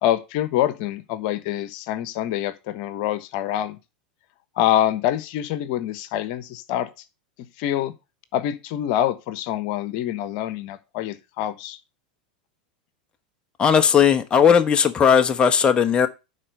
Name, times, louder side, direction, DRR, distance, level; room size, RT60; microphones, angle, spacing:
voice 1, 0.0-3.8 4.6-6.9 7.6-7.9 8.3-11.8, left 12 dB, 60° left, 1.1 m, -25 dB
voice 2, 13.6-16.1, left 7 dB, 25° left, 0.9 m, -17 dB
9.9 x 4.3 x 6.6 m
hypercardioid pair, 110°, 4 cm